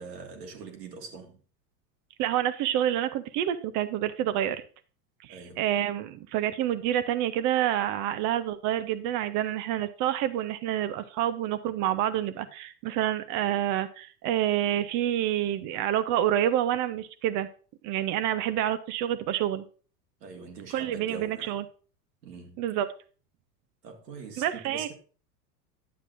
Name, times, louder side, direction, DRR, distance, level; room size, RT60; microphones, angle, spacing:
voice 1, 0.0-1.4 5.3-5.6 20.2-21.6 22.2-22.6 23.8-24.9, right 4 dB, 80° right, 1.7 m, -43 dB
voice 2, 2.2-4.6 5.2-17.5 17.8-19.6 20.7-21.6 22.6-22.9 24.4-24.9, right 11 dB, 40° right, 0.6 m, -28 dB
10.0 x 7.3 x 2.5 m
hypercardioid pair, 90°, 48 cm